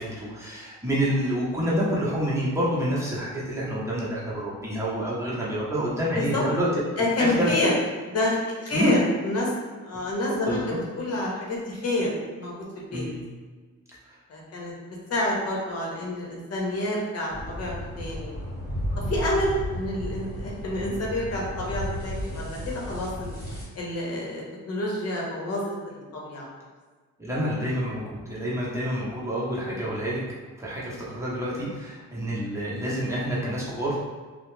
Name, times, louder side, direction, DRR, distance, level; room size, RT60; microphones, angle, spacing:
voice 1, 0.0-6.7 7.0-7.5 8.7-9.0 10.3-10.6 12.9-13.3 14.1-14.2 27.2-30.2 30.6-34.0, equal, 10° right, -7 dB, 0.8 m, -28 dB
voice 2, 6.1-6.4 7.0-7.7 8.1-9.5 9.8-12.1 12.4-13.1 14.3-14.7 15.1-18.4 19.1-23.3 23.8-26.5 29.6-29.8 31.6-31.7, left 1 dB, 55° left, -3 dB, 0.9 m, -28 dB
sound 1, 17.3-23.7, equal, 35° left, 1.2 m, -33 dB
2.4 x 2.1 x 3.1 m, 1.4 s
cardioid pair, 90°, 30 cm